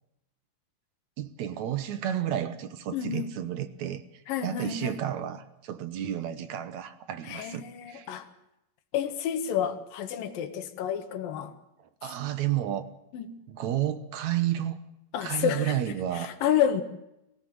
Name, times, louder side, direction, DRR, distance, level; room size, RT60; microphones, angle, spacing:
voice 1, 1.2-4.0 4.4-8.1 12.0-12.9 13.5-14.8 15.2-16.4, right 11 dB, 65° right, 2.0 m, -31 dB
voice 2, 2.9-3.3 4.3-4.9 7.3-8.3 8.9-11.5 13.1-13.3 15.1-15.8 16.1-16.8, left 9 dB, 70° left, 3.1 m, -29 dB
24.0 x 15.5 x 7.6 m
omnidirectional pair, 4.2 m